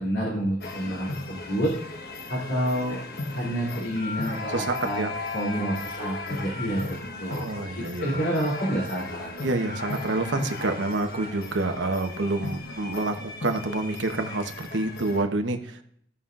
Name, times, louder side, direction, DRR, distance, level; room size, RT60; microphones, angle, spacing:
voice 1, 0.0-1.7 2.3-3.0 3.3-5.0 5.3-7.5 7.8-9.4, equal, 85° left, -6 dB, 2.9 m, -29 dB
sound 1, 0.6-15.2, left 2 dB, 55° left, 1.1 m, -36 dB
voice 2, 4.5-5.7 7.3-8.1 9.4-15.8, right 2 dB, 90° right, 5 dB, 1.0 m, -28 dB
16.0 x 5.6 x 2.5 m, 0.67 s
head